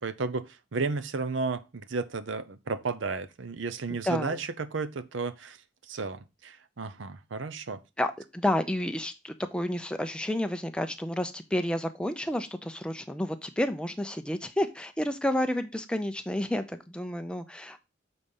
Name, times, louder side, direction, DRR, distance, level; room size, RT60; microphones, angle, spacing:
voice 1, 0.0-7.8, right 4 dB, 80° right, 0.7 m, -33 dB
voice 2, 4.0-4.4 8.0-17.8, left 1 dB, 5° left, 0.5 m, -30 dB
6.6 x 4.2 x 5.4 m
head